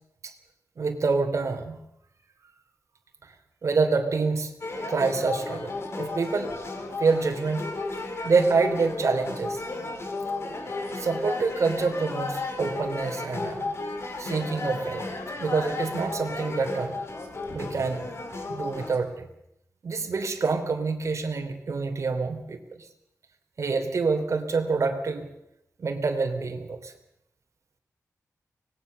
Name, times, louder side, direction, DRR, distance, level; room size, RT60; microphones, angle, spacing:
voice 1, 0.8-1.8 3.2-3.3 3.6-4.5 4.9-6.6 7.0-7.7 8.2-9.6 10.9-13.7 14.2-15.1 15.3-17.0 17.5-18.0 18.5-19.3 19.8-22.9 23.6-25.3 25.8-26.9, right 4 dB, 60° right, 4 dB, 3.3 m, -27 dB
sound 1, 4.6-19.0, left 3 dB, 50° left, 4.7 m, -34 dB
25.0 x 20.0 x 6.7 m, 0.79 s
wide cardioid pair, 130°, 6 cm